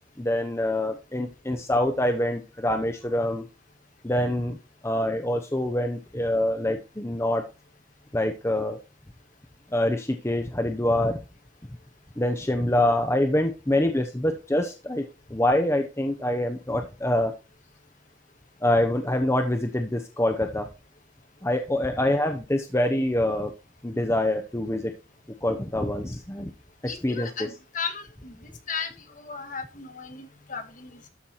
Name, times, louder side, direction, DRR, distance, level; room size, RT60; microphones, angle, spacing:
voice 1, 0.2-3.5 4.0-4.6 4.8-7.4 8.1-8.8 9.7-11.2 12.2-15.0 15.3-17.3 18.6-20.7 21.4-23.5 23.8-24.9 25.4-26.5 26.8-27.5, left 1 dB, 15° left, 5 dB, 0.9 m, -25 dB
voice 2, 26.9-28.3 28.7-28.9 29.2-31.1, left 5 dB, 45° left, 7 dB, 1.6 m, -35 dB
13.0 x 4.7 x 4.3 m, 0.28 s
head